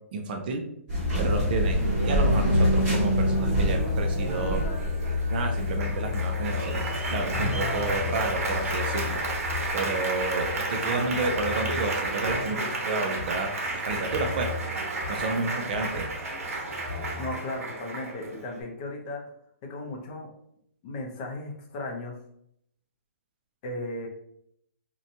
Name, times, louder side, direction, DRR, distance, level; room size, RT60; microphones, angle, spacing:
voice 1, 0.1-0.7 1.2-4.6 5.3-9.2 9.7-12.6 12.9-14.5 15.1-16.1, right 3 dB, 40° right, 4 dB, 0.4 m, -30 dB
sound 1, 0.9-9.7, left 2 dB, 25° right, 1.3 m, -27 dB
Applause, 1.6-18.6, right 2 dB, 75° right, 0.8 m, -31 dB
sound 2, 6.5-17.3, left 3 dB, ahead, 0.9 m, -40 dB
voice 2, 17.2-19.3 19.6-20.3 20.8-22.2 23.6-24.1, left 2 dB, 30° left, 1 dB, 0.5 m, -36 dB
2.7 x 2.1 x 2.6 m, 0.73 s
hypercardioid pair, 160°, 8 cm